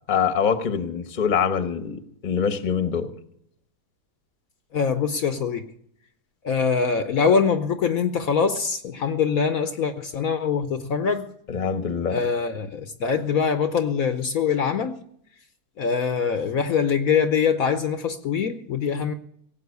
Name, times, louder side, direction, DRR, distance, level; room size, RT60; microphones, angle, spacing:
voice 1, 0.1-3.1 11.5-12.2, left 7 dB, 35° left, 1.0 m, -24 dB
voice 2, 4.7-5.7 6.4-11.3 12.1-15.0 15.8-19.1, left 6 dB, 65° left, 1.1 m, -23 dB
17.5 x 7.6 x 8.1 m
omnidirectional pair, 1.8 m